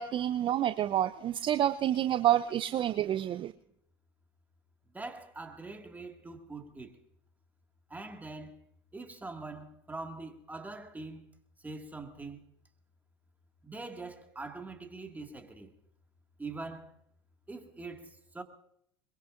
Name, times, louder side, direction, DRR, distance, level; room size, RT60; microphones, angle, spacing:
voice 1, 0.0-3.5, right 11 dB, 35° right, 0.5 m, -28 dB
voice 2, 4.9-7.0 7.9-8.6 8.9-11.3 11.6-12.4 13.6-15.7 16.4-16.9 17.5-18.4, right 3 dB, 10° right, 2.0 m, -43 dB
22.5 x 22.0 x 2.6 m
hypercardioid pair, 80°, 14 cm